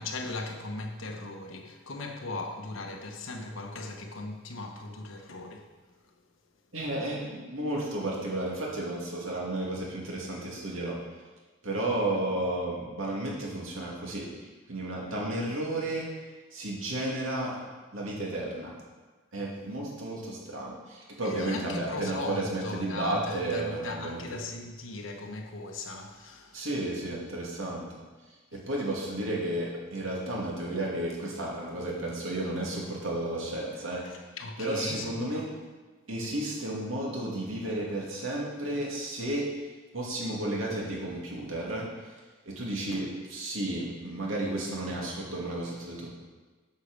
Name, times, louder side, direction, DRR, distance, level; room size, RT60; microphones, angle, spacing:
voice 1, 0.0-5.7 21.2-26.7 34.0-35.4, left 2 dB, 70° left, 3 dB, 1.1 m, -38 dB
voice 2, 6.7-11.0 11.6-14.3 14.7-16.1 16.5-17.7 17.9-18.7 19.3-24.2 26.5-28.0 28.5-34.0 34.6-35.5 36.1-39.5 39.9-42.1 42.5-46.1, right 1 dB, 80° right, -3 dB, 2.4 m, -32 dB
8.3 x 5.8 x 6.7 m, 1.3 s
head